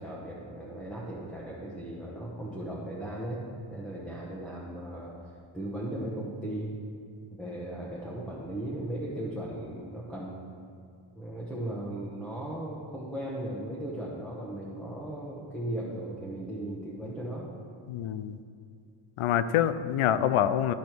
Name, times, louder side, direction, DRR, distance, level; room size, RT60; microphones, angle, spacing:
voice 1, 0.0-3.4 3.7-6.7 7.3-10.4 11.2-17.5, right 1 dB, ahead, -6 dB, 1.0 m, -37 dB
voice 2, 17.9-18.4 19.2-20.7, left 10 dB, 85° left, 13 dB, 0.6 m, -26 dB
12.0 x 5.2 x 4.5 m, 2.4 s
wide cardioid pair, 150°, 49 cm